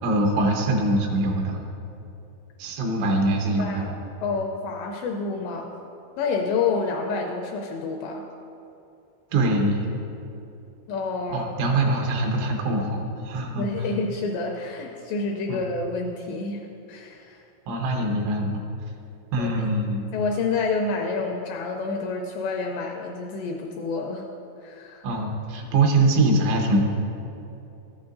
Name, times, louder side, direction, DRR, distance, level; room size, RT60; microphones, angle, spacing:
voice 1, 0.0-1.6 2.6-3.9 9.3-9.9 11.3-13.7 15.5-15.6 17.7-18.6 19.3-20.1 25.0-26.8, right 2 dB, 80° right, 1 dB, 3.5 m, -23 dB
voice 2, 3.6-3.9 4.2-5.7 6.2-8.2 10.9-11.8 13.5-16.6 16.9-17.4 19.4-19.7 20.1-24.3 24.6-25.1, left 4 dB, 85° left, 1 dB, 2.5 m, -28 dB
13.5 x 9.6 x 2.6 m, 2.8 s
omnidirectional pair, 5.4 m